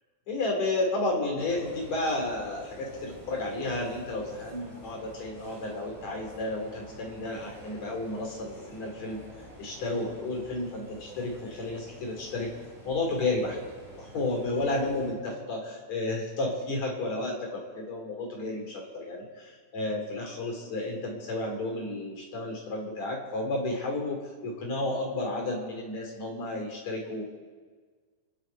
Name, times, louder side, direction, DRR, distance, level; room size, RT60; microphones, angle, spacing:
voice 1, 0.3-9.2 9.6-12.5 12.9-13.6 14.0-27.2, left 2 dB, 45° left, 0 dB, 3.8 m, -32 dB
sound 1, 1.4-15.1, right 1 dB, 5° right, 4.9 m, -48 dB
27.0 x 10.5 x 4.5 m, 1.5 s
omnidirectional pair, 5.1 m